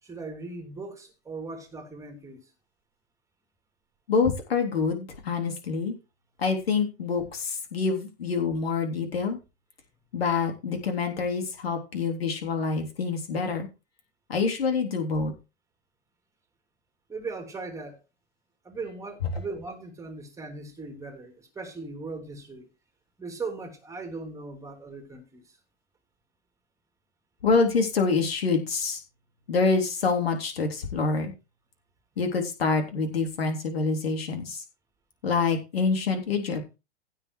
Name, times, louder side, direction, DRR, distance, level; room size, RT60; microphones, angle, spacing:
voice 1, 0.0-2.5 17.1-18.0 18.6-22.7 23.2-25.5, right 3 dB, 10° right, 2.8 m, -38 dB
voice 2, 4.1-6.0 6.4-9.4 10.1-13.7 14.3-15.3 27.4-29.0 29.5-31.3 32.2-34.6 35.2-36.6, left 4 dB, 65° left, 3.6 m, -26 dB
15.5 x 5.9 x 4.7 m
figure-of-eight pair, 105°, 33 cm